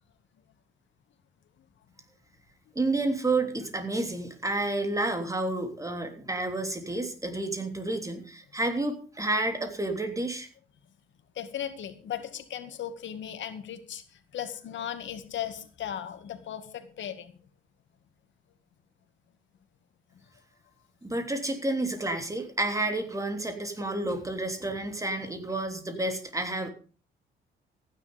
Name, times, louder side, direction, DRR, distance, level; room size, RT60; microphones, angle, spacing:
voice 1, 2.7-10.5 21.0-26.7, right 2 dB, 15° right, 6 dB, 3.2 m, -30 dB
voice 2, 11.4-14.0 14.3-17.3, left 10 dB, 70° left, 8 dB, 2.2 m, -37 dB
15.0 x 10.5 x 5.4 m, 0.39 s
cardioid pair, 90°, 20 cm